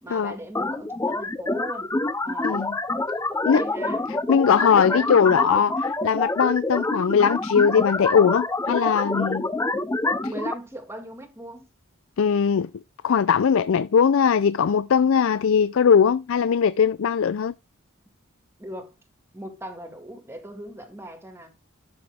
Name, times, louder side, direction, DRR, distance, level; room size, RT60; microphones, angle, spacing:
voice 1, 0.0-1.9 2.2-2.6 3.3-4.0 4.9-5.2 10.1-11.6 18.6-18.9 19.3-21.5, right 1 dB, 10° right, 2.1 m, -39 dB
sound 1, 0.5-10.5, left 2 dB, 15° left, 0.5 m, -27 dB
voice 2, 2.4-2.8 3.5-3.6 4.3-9.5 12.2-12.7 13.0-17.5, left 7 dB, 65° left, 0.4 m, -20 dB
12.5 x 6.0 x 3.6 m
head